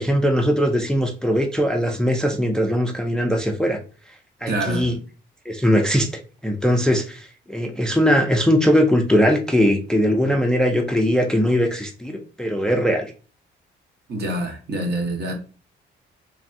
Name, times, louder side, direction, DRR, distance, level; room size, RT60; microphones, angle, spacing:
voice 1, 0.0-3.8 4.4-4.9 5.5-6.1 6.4-13.1, equal, 5° left, 0.4 m, -20 dB
voice 2, 4.5-4.9 14.1-15.3, right 1 dB, 55° right, 0.9 m, -26 dB
3.3 x 2.3 x 2.6 m
cardioid pair, 90°, 20 cm